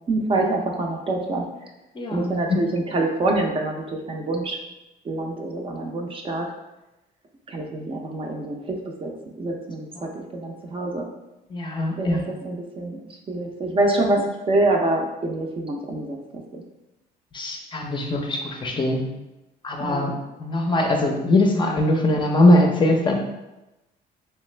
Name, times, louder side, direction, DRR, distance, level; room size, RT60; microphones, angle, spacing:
voice 1, 0.0-1.4 2.1-4.6 5.1-6.5 7.5-8.8 9.0-9.1 9.4-9.9 10.1-11.1 12.0-13.0 13.3-16.6 19.8-20.2, right 2 dB, 30° right, 1 dB, 0.5 m, -26 dB
voice 2, 2.0-2.3 10.0-10.1 11.5-12.2 17.3-19.0 19.6-20.1 20.4-23.1, left 1 dB, 30° left, 2 dB, 0.5 m, -21 dB
3.3 x 2.8 x 3.2 m, 0.98 s
cardioid pair, 110°, 17 cm